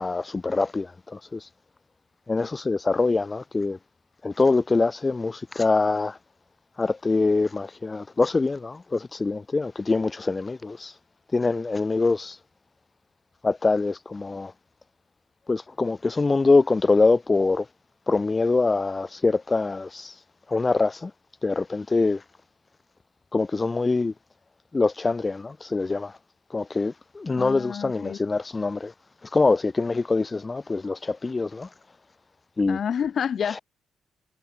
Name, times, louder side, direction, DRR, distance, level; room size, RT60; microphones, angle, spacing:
voice 1, 0.0-1.5 2.3-3.8 4.2-6.2 6.8-10.9 11.3-12.4 13.4-14.5 15.5-17.7 18.1-20.1 20.5-21.1 21.4-22.2 23.3-24.1 24.7-26.1 26.5-28.9 29.2-31.7 32.6-32.8, left 3 dB, 25° left, 1.1 m, -24 dB
voice 2, 27.4-28.2 32.7-33.6, left 8 dB, 55° left, 0.8 m, -28 dB
cardioid pair, 90°, 0 cm